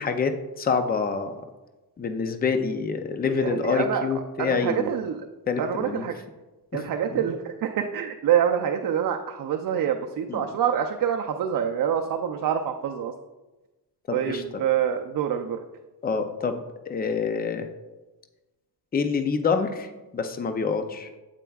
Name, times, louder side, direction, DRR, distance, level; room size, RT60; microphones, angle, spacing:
voice 1, 0.0-1.3 2.0-4.9 5.5-6.1 6.7-6.8 7.1-7.2 10.3-10.5 14.1-14.4 16.0-17.7 18.9-21.1, left 5 dB, 25° left, 7 dB, 0.4 m, -27 dB
voice 2, 3.2-4.1 4.4-5.2 5.6-6.2 6.7-13.1 14.1-15.6, right 8 dB, 55° right, 4 dB, 0.5 m, -26 dB
9.0 x 8.2 x 2.3 m, 1.1 s
wide cardioid pair, 175°, 41 cm